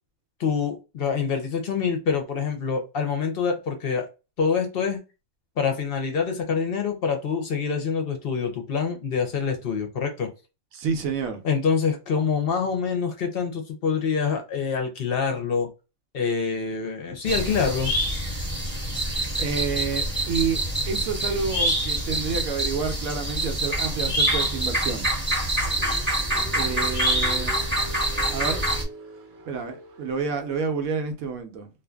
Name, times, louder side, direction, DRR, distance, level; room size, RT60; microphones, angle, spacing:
voice 1, 0.4-4.1 4.4-5.0 5.6-10.3 11.4-15.7 16.1-17.9, left 6 dB, 55° left, 0.7 m, -26 dB
voice 2, 10.7-11.4 19.4-20.6 20.9-25.1 26.5-27.5 28.3-28.6 29.5-31.7, right 5 dB, 85° right, 1.1 m, -29 dB
sound 1, 17.3-28.8, right 1 dB, 10° right, 1.0 m, -26 dB
Car, 25.2-30.6, right 5 dB, 60° right, 0.8 m, -42 dB
2.6 x 2.4 x 2.2 m
omnidirectional pair, 1.4 m